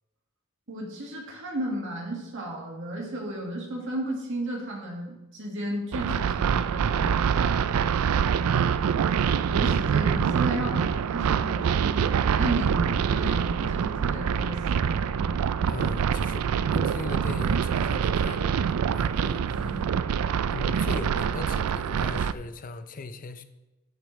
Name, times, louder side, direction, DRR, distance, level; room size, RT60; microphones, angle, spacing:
voice 1, 0.7-8.6 9.4-15.4 19.5-19.8, right 1 dB, 60° right, -2 dB, 1.9 m, -34 dB
sound 1, 5.9-22.3, right 7 dB, 85° right, 0.4 m, -25 dB
voice 2, 15.7-19.6 20.5-23.4, left 3 dB, 40° left, 10 dB, 0.6 m, -38 dB
10.0 x 8.3 x 3.2 m, 0.99 s
head